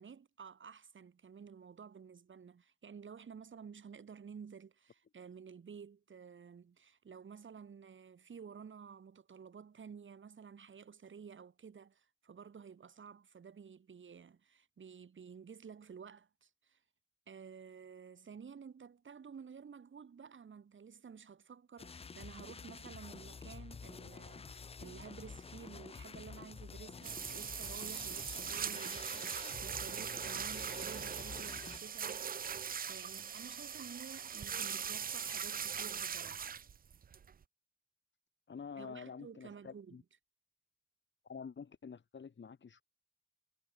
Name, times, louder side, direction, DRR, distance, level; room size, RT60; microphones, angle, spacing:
voice 1, 0.0-16.8 17.3-36.4 38.8-40.0, right 6 dB, 75° right, 1.5 m, -52 dB
sound 1, 21.8-31.8, left 5 dB, 30° left, 0.4 m, -49 dB
sound 2, 27.0-37.4, right 7 dB, 45° right, 0.4 m, -41 dB
voice 2, 38.5-40.0 41.2-42.8, left 6 dB, 65° left, 1.6 m, -48 dB
wide cardioid pair, 125°, 20 cm